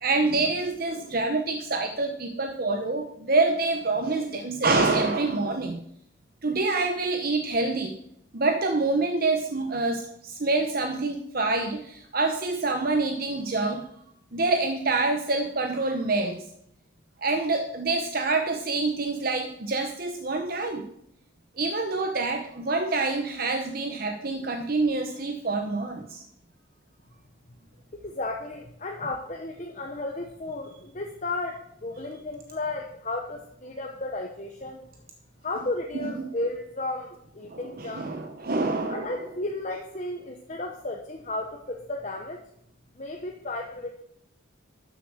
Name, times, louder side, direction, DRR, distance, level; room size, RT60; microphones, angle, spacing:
voice 1, 0.0-5.8 6.4-7.9 8.3-13.9 14.3-16.4 17.2-20.9 21.6-26.2 35.9-36.1 37.5-39.2, right 3 dB, 50° right, 5 dB, 0.9 m, -26 dB
voice 2, 28.0-34.8 35.4-38.1 38.9-42.4 43.0-43.9, left 2 dB, 35° left, 2 dB, 1.0 m, -34 dB
12.5 x 7.0 x 6.4 m, 0.72 s
head